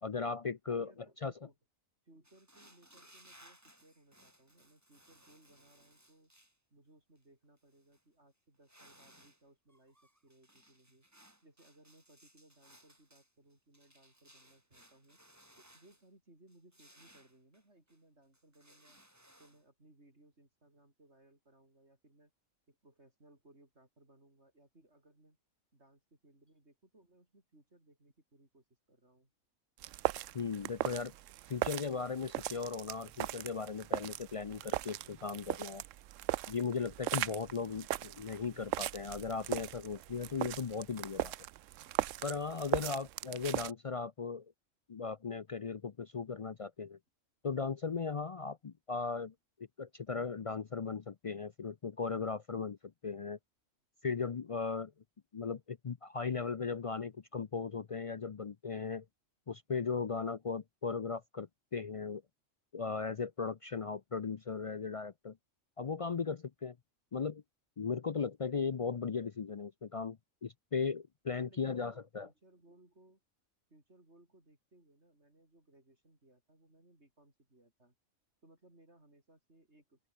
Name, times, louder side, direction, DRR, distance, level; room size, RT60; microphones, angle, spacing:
voice 1, 0.0-0.9 1.2-1.3 30.3-31.1 31.5-35.8 36.5-41.3 42.2-44.5 44.9-47.0 47.4-49.3 49.8-52.8 53.0-53.4 54.0-54.9 55.3-59.0 59.5-62.2 62.7-65.4 65.8-66.8 67.1-67.4 67.8-72.3, left 5 dB, 65° left, 0.3 m, -37 dB
voice 2, 0.7-1.6 2.0-6.3 6.7-10.0 10.2-11.1 11.4-15.2 15.6-19.0 19.4-22.3 22.7-25.4 25.7-29.3 71.4-73.2 73.7-77.9 78.4-80.1, right 1 dB, 55° right, 6.3 m, -64 dB
sound 1, 2.2-6.6 7.2-7.3 7.6-8.0 8.5-9.4 9.7-16.1 16.5-18.0 18.3-19.6, right 1 dB, 10° right, 3.6 m, -63 dB
sound 2, 29.8-43.7, right 14 dB, 75° right, 0.9 m, -39 dB
open air
omnidirectional pair, 1.4 m